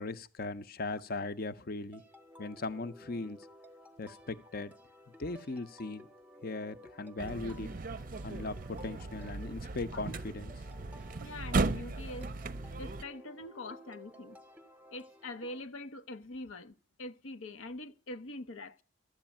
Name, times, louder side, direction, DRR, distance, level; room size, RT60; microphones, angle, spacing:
voice 1, 0.0-2.0 2.4-3.5 4.0-4.7 5.2-6.1 6.4-7.7 8.2-10.5, left 3 dB, 45° left, 0.7 m, -38 dB
sound 1, 1.9-15.6, equal, 10° right, 0.8 m, -55 dB
sound 2, 7.2-13.0, right 3 dB, 45° right, 0.6 m, -36 dB
voice 2, 11.2-12.3 12.8-14.4 14.9-18.8, left 2 dB, 80° left, 0.8 m, -44 dB
13.5 x 8.1 x 8.7 m
head